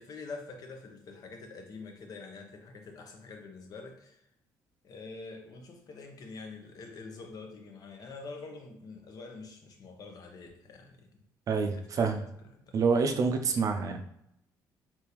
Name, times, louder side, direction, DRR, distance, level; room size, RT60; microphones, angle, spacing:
voice 1, 0.0-4.2 4.8-11.1 11.7-12.1 12.6-12.7, left 3 dB, 55° left, 3 dB, 0.7 m, -45 dB
voice 2, 11.5-12.2 12.7-14.0, right 5 dB, 50° right, 5 dB, 0.5 m, -27 dB
3.5 x 2.8 x 3.0 m, 0.76 s
cardioid pair, 100°, 7 cm